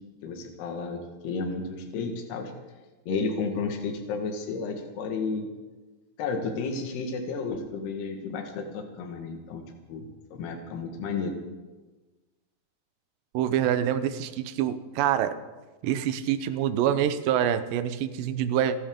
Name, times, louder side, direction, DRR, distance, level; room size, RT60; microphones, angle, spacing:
voice 1, 0.2-2.5 3.1-5.5 6.2-9.6 9.9-11.3, left 4 dB, 80° left, 3 dB, 3.7 m, -32 dB
voice 2, 13.3-15.3 15.8-18.8, right 10 dB, 75° right, 11 dB, 2.3 m, -26 dB
28.5 x 13.0 x 3.7 m, 1.2 s
omnidirectional pair, 4.6 m